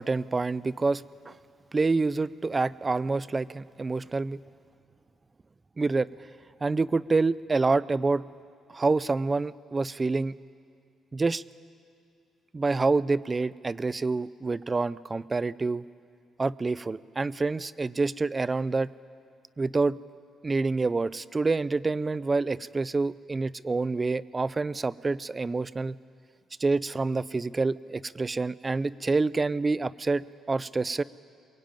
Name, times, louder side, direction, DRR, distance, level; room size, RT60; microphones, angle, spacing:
voice 1, 0.0-1.3 1.7-4.4 5.8-6.1 6.6-8.2 8.7-10.3 11.1-11.4 12.5-15.8 16.4-18.9 19.6-20.0 20.4-26.0 26.6-31.0, right 3 dB, 25° right, 18 dB, 0.5 m, -27 dB
22.5 x 22.0 x 9.1 m, 2.3 s
cardioid pair, 105°, 0 cm